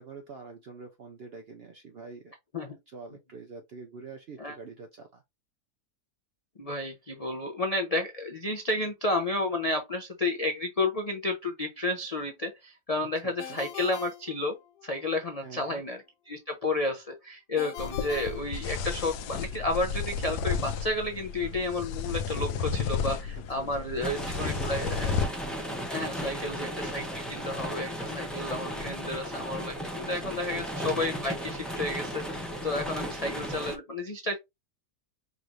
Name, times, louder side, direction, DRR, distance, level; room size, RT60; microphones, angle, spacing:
voice 1, 0.0-2.3 2.6-5.2 13.2-13.6 15.4-15.8 23.5-25.2 30.0-30.6, right 4 dB, 65° right, 0.6 m, -46 dB
voice 2, 6.6-14.5 14.8-16.0 16.3-25.1 25.9-34.4, left 2 dB, 55° left, 0.4 m, -31 dB
Ringtone, 13.4-15.1 17.6-19.2, left 11 dB, 70° left, 1.0 m, -43 dB
sound 1, 17.8-25.3, left 6 dB, 90° left, 1.2 m, -33 dB
sound 2, 24.0-33.8, equal, ahead, 0.6 m, -35 dB
4.9 x 2.5 x 3.0 m
omnidirectional pair, 1.7 m